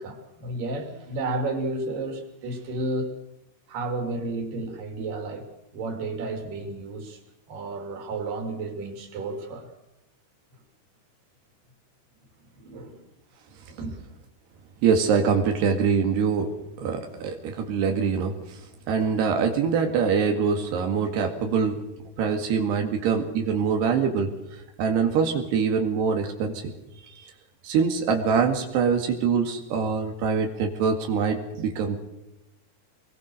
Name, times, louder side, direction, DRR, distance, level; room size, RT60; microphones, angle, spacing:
voice 1, 0.0-3.1 3.7-5.4 5.7-7.2 7.5-9.7 12.6-13.0 13.7-14.0, right 2 dB, 55° right, 4.9 m, -32 dB
voice 2, 14.8-16.5 16.8-18.6 18.9-21.8 22.2-24.3 24.8-26.7 27.1-27.3 27.6-32.0, right 6 dB, 85° right, 4.2 m, -24 dB
25.5 x 21.0 x 6.5 m
omnidirectional pair, 4.6 m